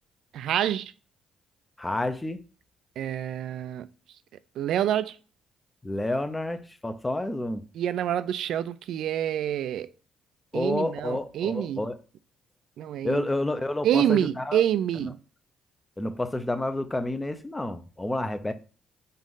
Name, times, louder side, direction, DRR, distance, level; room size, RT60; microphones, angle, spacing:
voice 1, 0.3-0.9 3.0-3.9 4.6-5.2 7.8-9.9 10.5-11.8 12.8-13.2 13.8-15.2, right 10 dB, 70° right, 0.3 m, -27 dB
voice 2, 1.8-2.4 5.8-7.6 10.5-12.0 13.0-14.6 16.0-18.5, left 1 dB, 15° left, 0.6 m, -29 dB
5.3 x 2.5 x 3.7 m
supercardioid pair, 60°, 0 cm